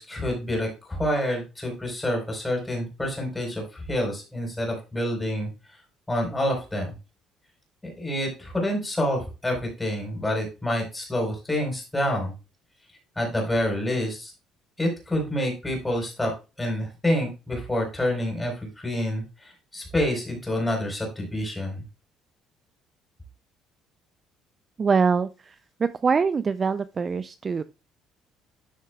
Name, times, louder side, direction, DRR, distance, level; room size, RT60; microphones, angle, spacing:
voice 1, 0.0-5.5 6.1-6.9 7.8-12.3 13.2-14.3 14.8-16.3 16.6-21.8, left 1 dB, 10° left, 2 dB, 3.8 m, -27 dB
voice 2, 24.8-27.6, right 5 dB, 25° right, 13 dB, 0.3 m, -24 dB
11.5 x 6.5 x 2.2 m, 0.29 s
cardioid pair, 150°, 0 cm